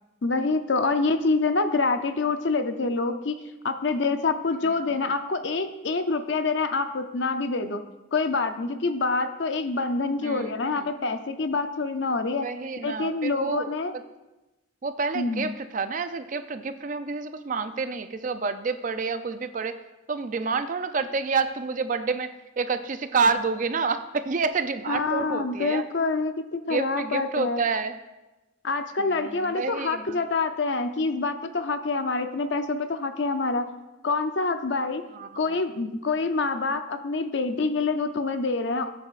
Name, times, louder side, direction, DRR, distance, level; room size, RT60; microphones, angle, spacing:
voice 1, 0.2-3.4 3.6-7.8 8.1-12.5 12.8-13.9 15.1-15.6 24.9-27.6 28.6-33.7 34.0-35.0 35.4-38.9, left 3 dB, 65° left, 8 dB, 0.6 m, -26 dB
voice 2, 10.2-10.9 12.4-13.7 14.8-19.8 20.1-25.8 26.7-28.0 29.0-30.2 35.1-35.6, right 4 dB, 40° right, 10 dB, 0.5 m, -29 dB
15.0 x 8.5 x 2.5 m, 1.0 s
head